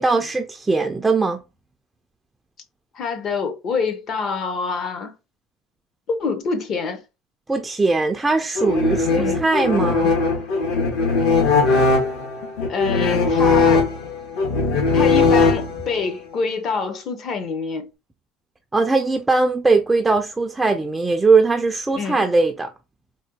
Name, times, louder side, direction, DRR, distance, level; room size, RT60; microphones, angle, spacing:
voice 1, 0.0-1.4 7.5-10.1 18.7-22.7, right 3 dB, 10° right, 0.3 m, -20 dB
voice 2, 2.9-5.2 6.1-7.0 9.1-9.4 12.7-13.9 14.9-17.9 21.9-22.2, left 5 dB, 45° left, 0.7 m, -26 dB
sound 1, 8.6-16.0, left 4 dB, 75° left, 1.4 m, -19 dB
4.1 x 2.1 x 2.7 m
cardioid pair, 125°, 0 cm